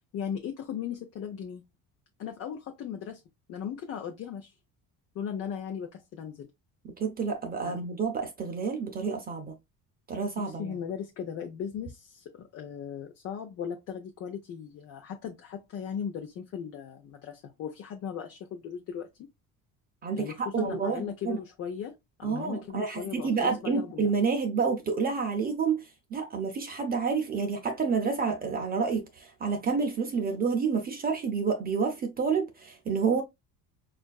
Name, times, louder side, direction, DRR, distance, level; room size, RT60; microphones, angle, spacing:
voice 1, 0.1-1.6 2.2-3.2 3.5-4.5 5.1-6.5 7.6-7.8 10.4-19.1 20.1-24.1, left 8 dB, 45° left, 0.6 m, -37 dB
voice 2, 7.0-9.6 10.1-10.7 20.0-21.4 22.2-33.2, right 5 dB, 25° right, 0.5 m, -29 dB
5.4 x 2.5 x 2.3 m
cardioid pair, 165°, 35 cm